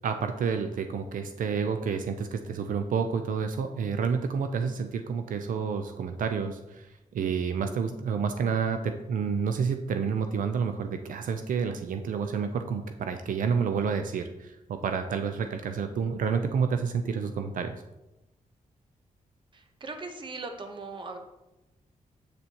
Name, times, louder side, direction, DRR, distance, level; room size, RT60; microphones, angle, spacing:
voice 1, 0.0-6.9 7.1-17.8, right 6 dB, 80° right, 7 dB, 0.5 m, -29 dB
voice 2, 19.5-21.2, right 3 dB, 35° right, 5 dB, 0.8 m, -39 dB
7.7 x 6.9 x 2.9 m, 0.98 s
wide cardioid pair, 150°, 14 cm